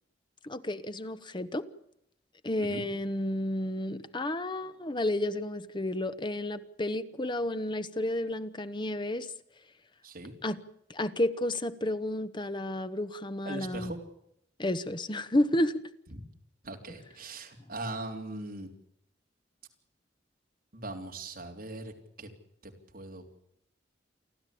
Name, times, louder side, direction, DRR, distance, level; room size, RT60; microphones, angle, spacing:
voice 1, 0.4-1.6 2.4-9.3 10.4-10.6 10.9-13.9 14.6-15.8, left 1 dB, 25° left, 1.0 m, -31 dB
voice 2, 13.5-14.0 16.1-16.2 16.6-18.7 20.7-21.9 22.2-22.3 22.6-23.2, right 2 dB, 55° right, 3.5 m, -40 dB
29.0 x 12.0 x 8.5 m
head